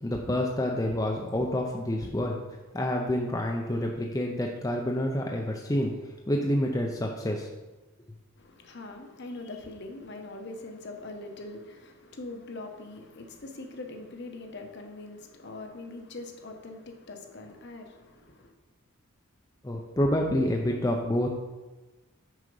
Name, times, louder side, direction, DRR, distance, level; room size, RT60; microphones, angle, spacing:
voice 1, 0.0-2.4 2.7-5.9 6.3-7.5 19.6-21.3, left 1 dB, 15° left, 0.5 m, -28 dB
voice 2, 8.4-18.5, left 2 dB, 50° left, 0.9 m, -42 dB
6.3 x 4.8 x 5.4 m
head